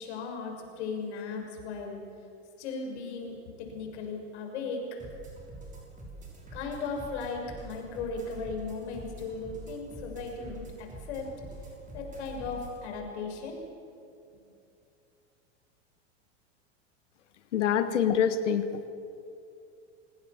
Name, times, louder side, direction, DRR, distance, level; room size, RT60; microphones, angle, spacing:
voice 1, 0.0-2.0 2.6-4.9 6.5-11.3 11.9-13.6, left 4 dB, 70° left, 2 dB, 6.4 m, -37 dB
sound 1, 5.0-12.8, right 2 dB, 20° right, 6.3 m, -45 dB
voice 2, 17.5-18.6, left 8 dB, 90° left, 10 dB, 1.4 m, -25 dB
28.0 x 18.5 x 7.4 m, 2.6 s
supercardioid pair, 120°, 35 cm